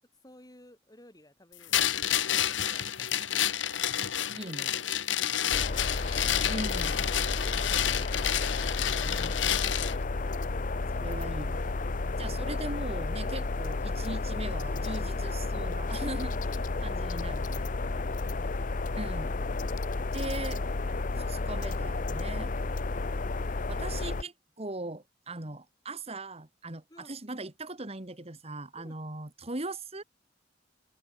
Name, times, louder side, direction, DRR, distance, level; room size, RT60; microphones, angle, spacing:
voice 1, 0.2-4.8 14.2-14.6 26.9-27.2 28.7-29.1, left 1 dB, 20° left, 7.9 m, -58 dB
sound 1, 1.7-10.0, left 10 dB, 85° left, 1.6 m, -29 dB
voice 2, 4.4-4.8 6.5-6.9 7.5-8.0 10.9-11.7 12.2-16.3 16.8-17.7 18.3-18.4 18.9-19.3 20.1-20.6 21.1-22.5 23.7-24.3 24.6-30.0, right 2 dB, 35° right, 2.1 m, -39 dB
sound 2, 5.5-24.2, left 3 dB, 45° left, 0.7 m, -32 dB
open air
head